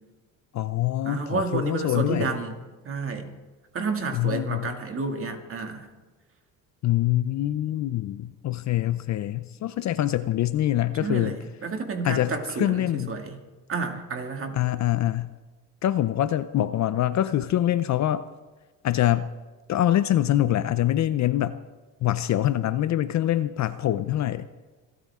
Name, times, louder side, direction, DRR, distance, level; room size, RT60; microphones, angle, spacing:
voice 1, 0.5-2.3 4.1-4.7 6.8-11.4 12.0-13.2 14.5-15.3 15.8-18.2 18.8-19.3 19.7-21.6 22.0-24.4, left 13 dB, 40° left, 13 dB, 0.6 m, -24 dB
voice 2, 1.0-2.6 2.8-3.3 3.7-5.9 11.0-13.4 13.7-14.6, right 4 dB, 30° right, 4 dB, 2.2 m, -30 dB
27.0 x 13.5 x 3.7 m, 1.3 s
cardioid pair, 135°, 42 cm